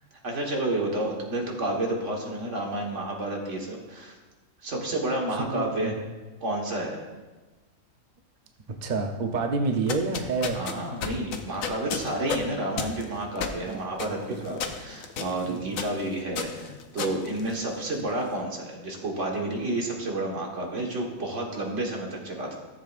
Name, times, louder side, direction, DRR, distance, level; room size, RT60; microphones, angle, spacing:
voice 1, 0.2-4.1 4.6-5.9 6.4-7.1 10.5-22.6, right 1 dB, 60° right, 0 dB, 1.8 m, -30 dB
voice 2, 5.4-5.9 8.8-10.6 13.6-13.9 14.4-14.5 15.4-15.9, right 4 dB, 45° right, 4 dB, 0.6 m, -28 dB
sound 1, 9.7-18.1, left 6 dB, 80° left, 1.1 m, -35 dB
14.0 x 7.4 x 2.4 m, 1.2 s
omnidirectional pair, 1.4 m